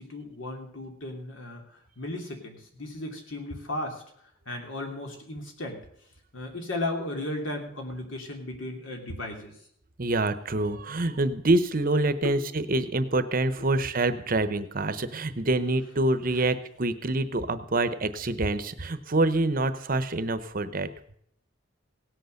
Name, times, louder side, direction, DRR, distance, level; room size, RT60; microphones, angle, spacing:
voice 1, 0.0-4.0 4.4-5.8 6.3-9.6 12.2-12.4 13.6-13.7 16.3-16.4, left 2 dB, 75° left, 2 dB, 3.1 m, -35 dB
voice 2, 10.0-20.9, right 2 dB, 45° right, 11 dB, 0.9 m, -26 dB
17.5 x 8.2 x 6.5 m, 0.69 s
head